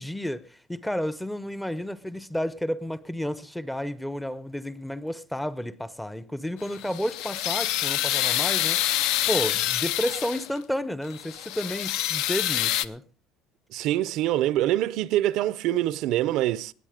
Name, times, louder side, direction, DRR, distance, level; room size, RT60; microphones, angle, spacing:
voice 1, 0.0-8.8 9.3-13.0, equal, 5° left, 0.6 m, -31 dB
sound 1, 6.6-10.6 11.1-12.9, left 13 dB, 70° left, 0.6 m, -27 dB
voice 2, 13.7-16.7, right 14 dB, 65° right, 0.5 m, -25 dB
19.5 x 8.2 x 5.0 m
cardioid pair, 150°, 0 cm